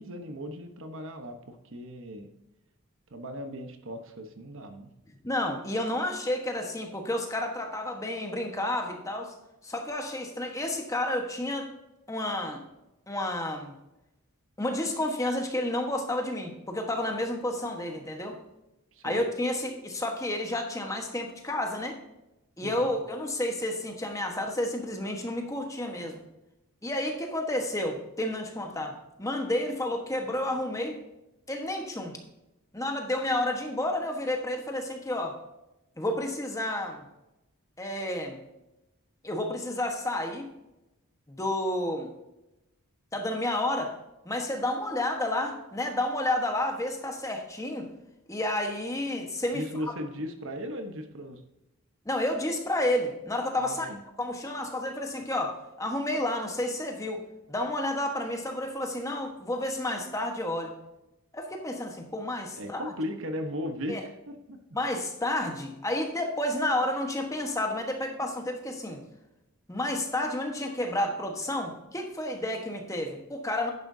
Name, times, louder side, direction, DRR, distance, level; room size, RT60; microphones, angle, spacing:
voice 1, 0.0-2.3 3.1-4.9 18.9-19.3 22.6-23.0 49.5-51.4 53.6-54.0 62.5-64.6, equal, 60° right, 7 dB, 1.1 m, -37 dB
voice 2, 5.2-9.3 9.6-11.7 12.1-12.6 13.1-13.7 14.6-18.4 19.0-22.0 22.6-26.2 26.8-31.0 31.5-32.2 32.7-35.4 36.0-37.0 37.8-38.4 39.2-40.5 41.3-42.1 43.1-43.9 44.2-47.9 48.3-49.6 52.0-53.9 54.2-57.2 57.5-60.7 61.3-62.9 63.9-64.0 64.7-69.0 69.7-73.7, left 1 dB, 15° left, 3 dB, 1.2 m, -30 dB
10.5 x 10.0 x 2.7 m, 0.93 s
head